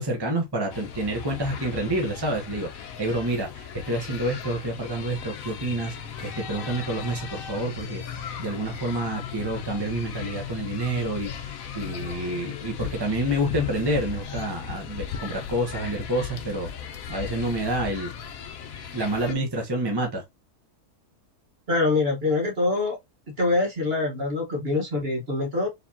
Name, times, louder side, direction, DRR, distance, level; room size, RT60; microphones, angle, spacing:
voice 1, 0.0-6.0 6.2-8.0 8.4-16.7 17.1-18.1 18.9-20.2, right 1 dB, 20° right, 0.8 m, -28 dB
sound 1, 0.7-19.3, left 8 dB, 65° left, 1.1 m, -37 dB
voice 2, 21.7-23.0 23.4-25.7, left 3 dB, 40° right, 1.5 m, -24 dB
4.8 x 3.4 x 2.8 m
omnidirectional pair, 1.7 m